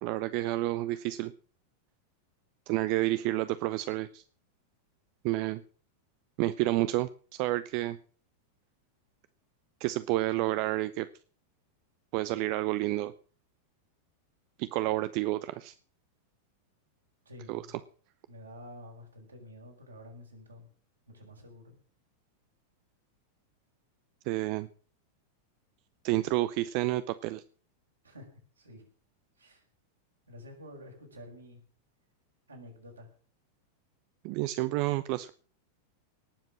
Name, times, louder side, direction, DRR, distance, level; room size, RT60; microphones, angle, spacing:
voice 1, 0.0-1.3 2.7-4.2 5.2-5.6 6.4-8.0 9.8-11.1 12.1-13.1 14.6-15.7 17.5-17.6 24.3-24.7 26.0-27.4 34.2-35.3, right 17 dB, 45° right, 14 dB, 0.6 m, -30 dB
voice 2, 17.2-17.8 18.3-20.7 21.1-21.8 28.0-28.3 28.6-28.8 29.4-29.6 30.3-31.6 32.5-33.1, left 1 dB, 75° right, 0 dB, 6.0 m, -49 dB
19.0 x 7.4 x 7.4 m, 0.42 s
figure-of-eight pair, 90°, 0 cm